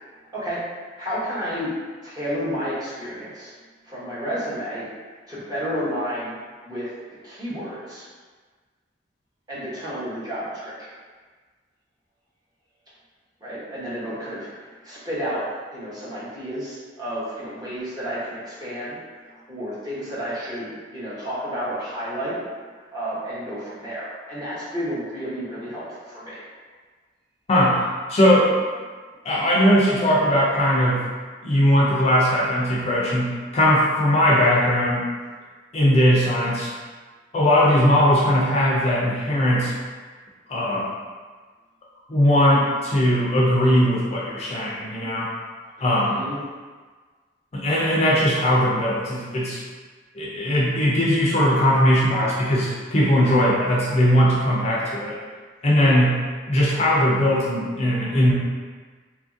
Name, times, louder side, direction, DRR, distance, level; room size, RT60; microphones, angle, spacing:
voice 1, 1.0-1.7 2.0-3.5 3.8-4.9 5.3-6.4 6.6-6.9 7.2-8.1 9.5-10.9 13.4-14.5 14.8-15.4 15.7-22.4 22.9-26.4 45.8-46.4, equal, 20° right, -10 dB, 0.8 m, -31 dB
voice 2, 27.5-28.6 29.2-31.1 31.4-35.0 35.7-36.7 37.3-39.7 40.5-40.9 42.1-45.3 45.8-46.2 47.5-49.6 50.1-55.2 55.6-58.3, equal, 35° left, -5 dB, 0.4 m, -19 dB
2.7 x 2.6 x 2.5 m, 1.5 s
head